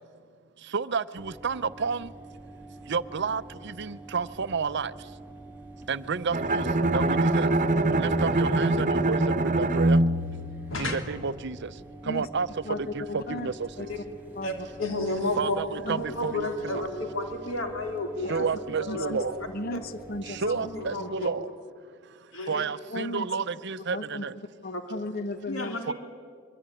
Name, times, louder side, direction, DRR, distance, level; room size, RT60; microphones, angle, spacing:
voice 1, 0.7-2.1 2.9-4.9 5.9-6.7 6.9-7.5 8.0-10.0 10.8-11.7 12.1-12.5 12.9-13.7 15.4-16.9 18.3-19.4 20.3-21.5 22.5-24.3 25.9-26.0, right 5 dB, 55° right, 15 dB, 0.7 m, -31 dB
sound 1, 1.2-21.0, right 2 dB, 10° right, 2.3 m, -46 dB
Bowed string instrument, 6.3-11.3, right 2 dB, 40° right, 1.1 m, -24 dB
voice 2, 12.6-13.5 13.8-13.9 14.3-14.7 15.8-16.0 18.2-18.4 18.9-19.2 19.5-20.4 21.0-21.1 22.9-23.3 23.9-24.2 24.6-25.8, left 1 dB, 50° left, 13 dB, 1.1 m, -35 dB
voice 3, 14.4-15.6 16.0-18.5 18.8-19.1 19.7-19.8 20.4-21.3 22.3-22.6 23.0-23.1 24.7-24.8 25.5-25.9, left 2 dB, 75° left, 4 dB, 3.5 m, -32 dB
24.5 x 23.5 x 9.9 m, 2.2 s
head